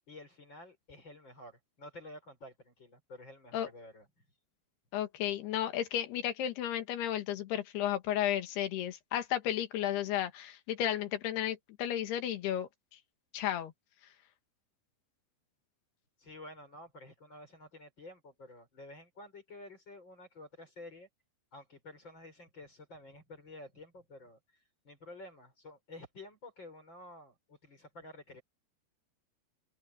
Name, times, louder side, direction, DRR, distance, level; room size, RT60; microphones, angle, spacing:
voice 1, 0.1-4.2 16.2-21.1 21.5-28.4, left 1 dB, 25° left, 5.8 m, -51 dB
voice 2, 4.9-12.7 13.3-13.7, left 11 dB, 75° left, 3.7 m, -33 dB
omnidirectional pair, 4.8 m